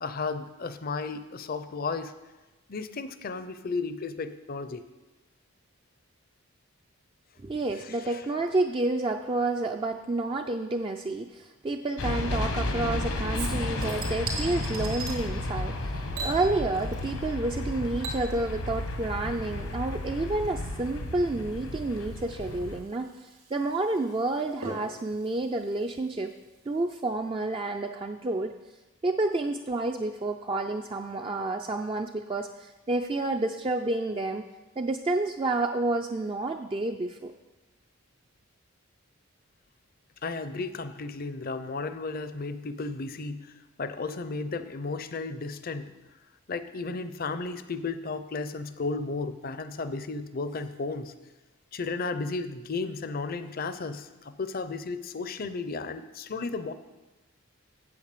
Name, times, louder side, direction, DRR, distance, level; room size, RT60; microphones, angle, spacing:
voice 1, 0.0-2.1 2.7-4.8 8.0-8.2 40.2-43.5 43.8-45.9 46.5-51.1 51.7-56.7, left 3 dB, 40° left, 11 dB, 0.5 m, -34 dB
voice 2, 7.4-26.3 26.7-28.5 29.0-34.4 34.8-37.3, right 2 dB, 25° right, 4 dB, 0.3 m, -30 dB
sound 1, 12.0-22.8, left 2 dB, 75° left, 1.1 m, -33 dB
Chink clink / Liquid, 13.3-15.2 16.1-17.3 17.6-26.6 26.9-27.0, right 3 dB, 80° right, 2.7 m, -42 dB
8.6 x 8.0 x 6.7 m, 1.1 s
head